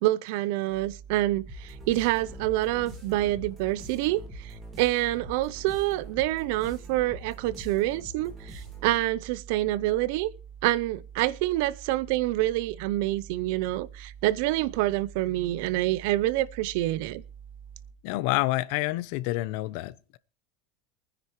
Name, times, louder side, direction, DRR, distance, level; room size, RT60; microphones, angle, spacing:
voice 1, 0.0-10.3 10.6-17.2, right 16 dB, 55° right, 0.5 m, -27 dB
sound 1, 0.7-17.9, right 8 dB, 75° right, 4.1 m, -47 dB
sound 2, 1.5-9.1, left 1 dB, 20° right, 3.4 m, -45 dB
voice 2, 18.0-20.2, left 18 dB, 50° left, 0.6 m, -28 dB
23.5 x 10.0 x 3.0 m
supercardioid pair, 175°, 0 cm